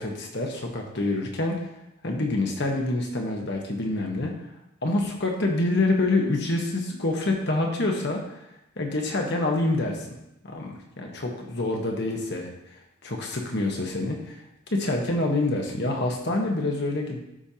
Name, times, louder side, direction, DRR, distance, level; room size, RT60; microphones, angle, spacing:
voice 1, 0.0-1.7 2.0-4.3 4.8-8.4 8.8-10.1 10.4-14.4 14.7-17.2, left 2 dB, 55° left, 1 dB, 1.2 m, -27 dB
12.5 x 5.3 x 2.9 m, 0.87 s
head